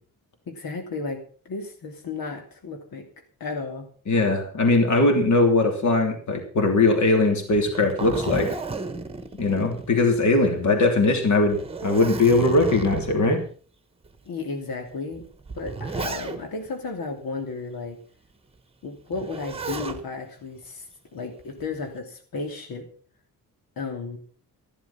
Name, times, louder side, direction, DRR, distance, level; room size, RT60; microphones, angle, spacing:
voice 1, 0.5-3.0 3.4-3.9 14.3-15.3 15.5-18.0 18.8-20.8 21.1-22.9 23.8-24.2, left 4 dB, 85° left, 4 dB, 2.9 m, -33 dB
voice 2, 4.1-8.5 9.4-13.4, left 2 dB, 55° left, 4 dB, 3.2 m, -20 dB
Zipper (clothing), 7.5-10.4 10.8-10.9 11.4-13.3 14.0-14.2 15.1-16.7 19.1-20.0 21.4-21.9, right 4 dB, 15° right, 1.3 m, -33 dB
14.0 x 12.0 x 5.8 m, 0.42 s
wide cardioid pair, 170°, 35 cm